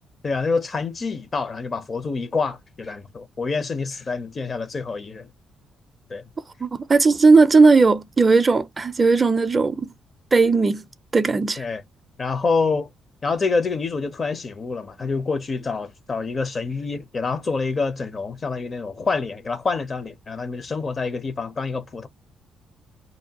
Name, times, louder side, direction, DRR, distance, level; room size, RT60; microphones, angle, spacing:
voice 1, 0.2-5.3 6.1-6.2 11.6-11.8 12.2-12.9 13.2-22.1, left 4 dB, 35° left, 0.5 m, -27 dB
voice 2, 6.6-9.9 10.3-10.8 11.1-11.6, right 4 dB, 30° right, 0.4 m, -17 dB
2.5 x 2.2 x 2.8 m
cardioid pair, 90°, 0 cm